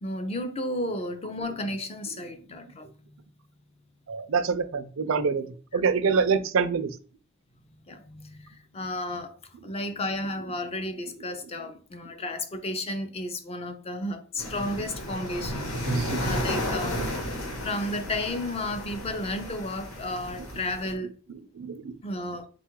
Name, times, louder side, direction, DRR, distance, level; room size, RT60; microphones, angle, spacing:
voice 1, 0.0-3.2 5.7-5.8 7.7-9.4 9.6-21.2 22.0-22.5, left 1 dB, 30° left, 0.5 m, -33 dB
voice 2, 4.1-5.5 5.7-6.9 15.9-16.4 17.0-17.1 21.6-21.9, right 5 dB, 70° right, 0.5 m, -26 dB
sound 1, 14.4-20.9, left 1 dB, 85° left, 1.1 m, -33 dB
3.9 x 2.4 x 4.5 m
head